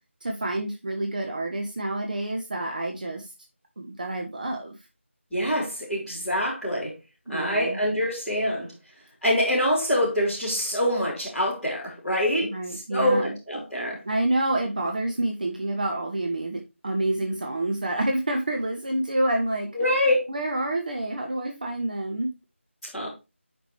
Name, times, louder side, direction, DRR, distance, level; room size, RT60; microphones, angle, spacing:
voice 1, 0.2-3.3 3.8-4.7 7.3-7.8 12.4-13.3 14.0-19.7 20.3-22.3, right 1 dB, 40° right, 2 dB, 1.3 m, -28 dB
voice 2, 5.3-6.9 7.3-8.7 9.2-14.0 19.7-20.3 22.9-23.1, left 1 dB, ahead, -14 dB, 3.4 m, -25 dB
10.0 x 5.1 x 3.3 m, 0.26 s
figure-of-eight pair, 165°, 7 cm